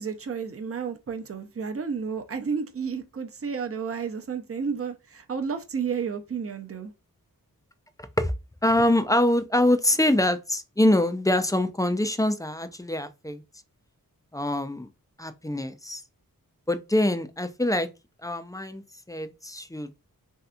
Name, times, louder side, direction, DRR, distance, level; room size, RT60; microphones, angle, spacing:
voice 1, 0.0-6.9, right 6 dB, 40° right, 0.7 m, -31 dB
voice 2, 8.6-13.4 14.3-14.9 15.2-16.0 16.7-17.9 18.2-18.8 19.1-19.9, left 1 dB, 10° left, 0.5 m, -24 dB
3.2 x 2.8 x 2.3 m
cardioid pair, 50°, 36 cm